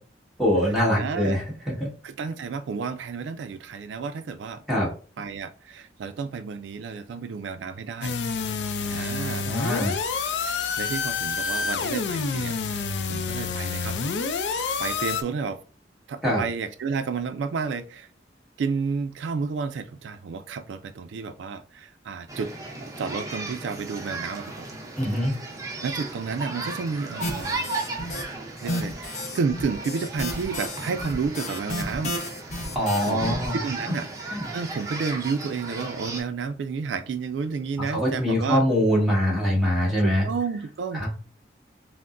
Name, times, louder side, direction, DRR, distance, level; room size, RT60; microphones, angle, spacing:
voice 1, 0.4-1.9 4.7-4.9 9.4-10.0 16.2-16.4 25.0-25.3 32.7-33.6 37.9-40.3 40.9-41.1, equal, ahead, 1.3 m, -23 dB
voice 2, 0.9-1.4 2.0-4.6 5.2-8.2 8.8-9.5 10.4-14.0 14.8-15.6 16.1-18.1 18.6-22.5 23.0-24.7 25.4-25.5 25.8-27.7 28.6-32.2 33.0-38.6 40.0-41.1, right 5 dB, 85° right, 0.3 m, -31 dB
sound 1, 8.0-15.2, left 5 dB, 75° left, 0.4 m, -28 dB
sound 2, 22.3-36.2, right 2 dB, 20° right, 0.7 m, -35 dB
sound 3, 27.2-28.2 28.6-33.5, left 1 dB, 40° left, 0.8 m, -32 dB
5.7 x 2.1 x 2.5 m
head